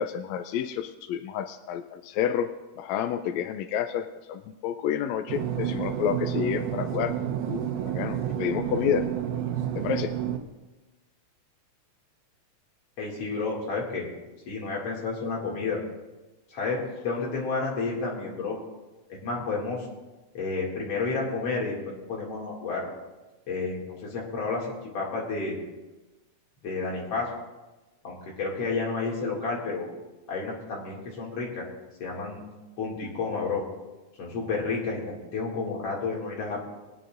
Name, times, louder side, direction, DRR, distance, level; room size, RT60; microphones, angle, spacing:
voice 1, 0.0-2.5 2.8-7.1 7.5-9.0 9.8-10.1, left 9 dB, 80° left, 8 dB, 1.6 m, -29 dB
sound 1, 5.3-10.4, right 10 dB, 85° right, 2.4 m, -30 dB
voice 2, 13.0-14.1 14.5-15.8 16.5-18.6 19.1-19.8 20.3-22.9 23.5-25.6 26.6-27.3 28.0-29.9 30.3-31.7 32.0-32.5 32.8-33.6 34.2-36.6, left 4 dB, 55° left, -3 dB, 3.3 m, -31 dB
22.0 x 9.5 x 2.5 m, 1.1 s
omnidirectional pair, 3.5 m